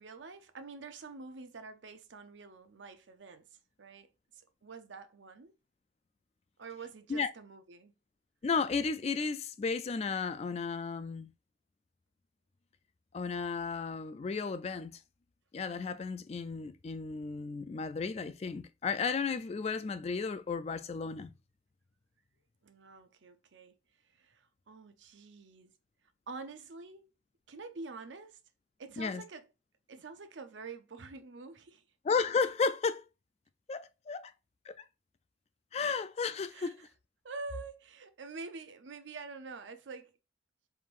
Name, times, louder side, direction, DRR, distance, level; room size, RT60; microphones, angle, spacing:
voice 1, 0.0-4.1 4.3-5.5 6.6-7.9 22.6-23.7 24.1-25.7 26.3-27.1 27.5-28.4 28.8-29.4 29.9-31.8 36.5-36.7 37.2-40.2, right 4 dB, 85° right, 0.6 m, -47 dB
voice 2, 8.4-11.3 13.1-15.0 15.5-21.3 29.0-29.2 32.0-33.1 33.7-34.3 34.7-34.8 35.7-36.9, left 5 dB, 35° left, 0.3 m, -33 dB
4.5 x 3.6 x 2.5 m
head